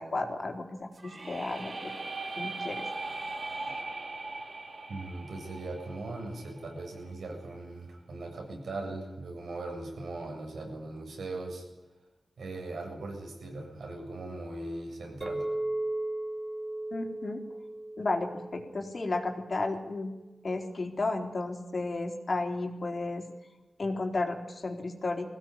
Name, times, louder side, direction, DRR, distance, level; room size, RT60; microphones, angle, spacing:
voice 1, 0.0-1.9 2.4-2.8 16.9-17.4 18.0-20.1 20.4-23.2 23.8-25.3, left 2 dB, 50° left, 3 dB, 4.1 m, -33 dB
sound 1, 0.9-6.8, right 3 dB, 50° right, 3.7 m, -39 dB
voice 2, 4.9-11.7 12.4-15.5, right 2 dB, 90° right, 1 dB, 7.7 m, -39 dB
Chink clink, 15.2-19.7, right 1 dB, 20° right, 3.2 m, -36 dB
22.0 x 17.0 x 9.9 m, 1.1 s
wide cardioid pair, 70°, 0 cm